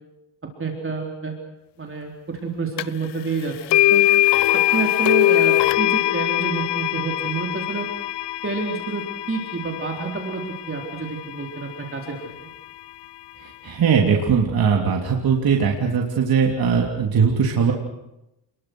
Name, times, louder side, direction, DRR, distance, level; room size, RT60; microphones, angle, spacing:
voice 1, 0.4-1.4 1.8-4.0 4.5-7.9 8.4-12.3, right 4 dB, 30° right, 1 dB, 4.1 m, -28 dB
sound 1, 2.8-2.9 3.7-11.7, left 16 dB, 75° left, 0.8 m, -22 dB
voice 2, 13.6-17.7, right 6 dB, 55° right, 0 dB, 3.3 m, -20 dB
30.0 x 21.5 x 6.4 m, 0.88 s
cardioid pair, 90°, 42 cm